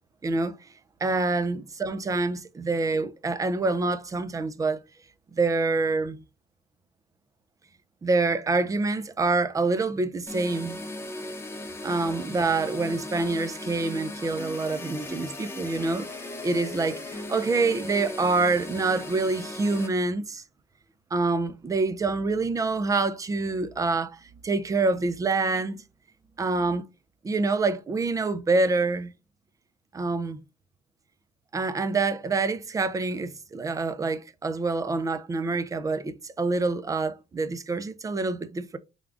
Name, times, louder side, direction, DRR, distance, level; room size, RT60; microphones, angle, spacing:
voice 1, 0.2-0.6 1.0-4.8 5.3-6.2 8.0-10.8 11.8-16.1 16.4-20.4 21.1-25.8 26.4-26.9 27.2-29.1 29.9-30.4 31.5-38.8, right 3 dB, 20° right, 0.4 m, -26 dB
sound 1, 10.3-19.9, left 2 dB, 15° left, 0.9 m, -38 dB
3.5 x 2.3 x 3.7 m
cardioid pair, 110°, 17 cm